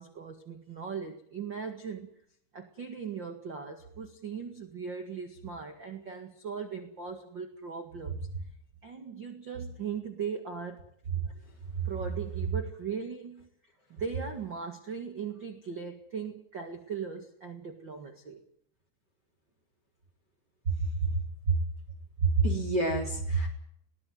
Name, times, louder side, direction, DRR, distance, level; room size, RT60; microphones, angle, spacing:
voice 1, 0.0-2.1 2.5-8.2 8.8-10.9 11.8-13.5 13.9-18.4, right 6 dB, 55° right, 5 dB, 1.3 m, -39 dB
voice 2, 22.2-23.5, right 4 dB, 25° right, 3 dB, 3.8 m, -26 dB
21.0 x 17.5 x 9.4 m, 0.69 s
omnidirectional pair, 5.3 m